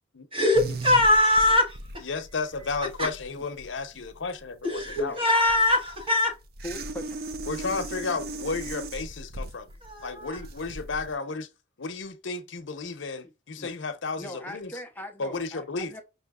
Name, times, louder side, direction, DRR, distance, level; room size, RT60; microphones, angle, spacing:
voice 1, 0.3-1.8 3.0-3.1 4.6-6.3 9.8-10.4, left 2 dB, 30° right, 1.4 m, -22 dB
sound 1, 0.5-11.1, right 2 dB, 50° right, 0.5 m, -38 dB
voice 2, 2.0-5.2 7.5-9.7 10.0-11.5 11.8-14.7 15.2-15.9, left 4 dB, 85° left, 0.8 m, -33 dB
voice 3, 6.6-7.2 13.6-13.7 14.2-16.0, left 1 dB, 10° left, 0.7 m, -40 dB
5.6 x 2.8 x 2.3 m
head